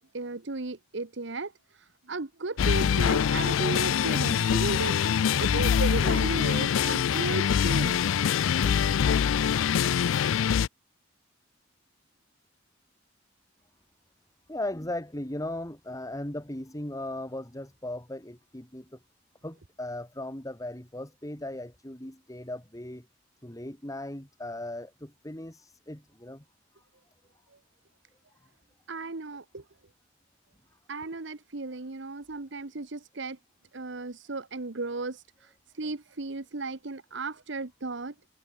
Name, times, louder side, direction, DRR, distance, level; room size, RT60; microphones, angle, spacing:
voice 1, 0.1-4.9 5.4-8.0 8.7-8.8 28.9-29.6 30.9-33.4 33.7-38.1, right 3 dB, 65° right, 1.2 m, -35 dB
sound 1, 2.6-10.7, left 8 dB, 85° left, 0.4 m, -24 dB
voice 2, 14.5-19.0 19.4-23.1 23.4-26.4, left 1 dB, 15° left, 2.5 m, -37 dB
head